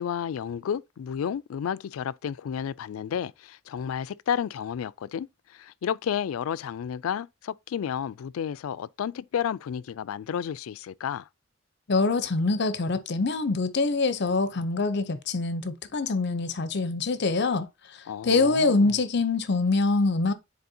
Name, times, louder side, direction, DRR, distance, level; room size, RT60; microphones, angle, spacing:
voice 1, 0.0-11.3 18.1-18.9, left 8 dB, 90° left, 0.3 m, -32 dB
voice 2, 11.9-20.3, left 3 dB, 55° left, 0.6 m, -25 dB
9.5 x 4.1 x 2.7 m
head